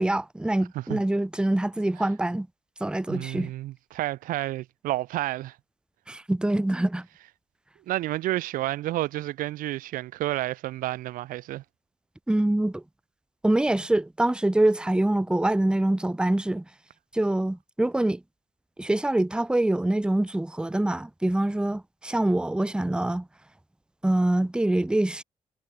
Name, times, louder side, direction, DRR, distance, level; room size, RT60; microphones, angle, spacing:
voice 1, 0.0-2.5 2.8-3.5 6.1-7.1 12.3-12.8 13.4-16.6 17.1-18.2 18.8-23.3 24.0-25.2, right 1 dB, 5° right, 0.5 m, -25 dB
voice 2, 3.1-5.6 7.9-11.6, right 15 dB, 90° right, 0.6 m, -30 dB
cardioid pair, 65°, 14 cm